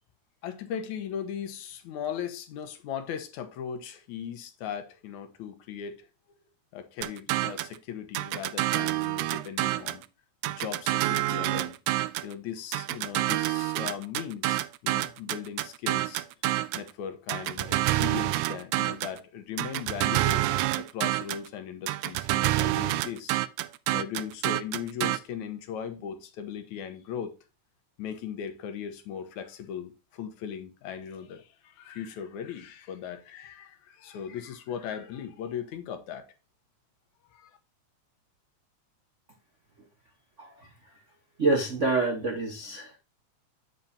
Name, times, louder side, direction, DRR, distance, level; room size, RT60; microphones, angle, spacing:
voice 1, 0.4-6.1 6.7-10.0 10.5-11.8 12.2-16.3 16.7-20.4 20.8-23.4 23.9-27.3 28.0-36.3 37.3-37.6, left 8 dB, 80° left, 2.4 m, -38 dB
sound 1, 7.0-7.8 8.2-10.0 10.4-12.3 12.7-16.9 17.3-19.2 19.6-21.5 21.9-25.2, right 17 dB, 85° right, 2.0 m, -28 dB
voice 2, 40.4-40.7 41.4-43.0, right 3 dB, 65° right, 0.7 m, -27 dB
7.6 x 7.1 x 2.7 m
omnidirectional pair, 3.4 m